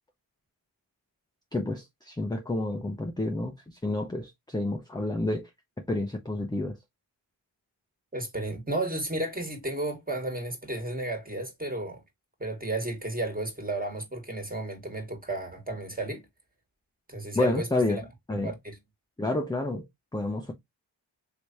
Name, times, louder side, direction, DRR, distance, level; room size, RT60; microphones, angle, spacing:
voice 1, 1.5-5.5 5.9-6.8 17.3-18.0 18.3-18.5 19.2-19.9 20.1-20.5, left 2 dB, 10° left, 0.6 m, -29 dB
voice 2, 8.1-12.0 12.4-16.2 17.1-18.0 18.4-18.8, right 2 dB, 20° right, 1.5 m, -33 dB
3.3 x 3.0 x 2.7 m
cardioid pair, 45°, 48 cm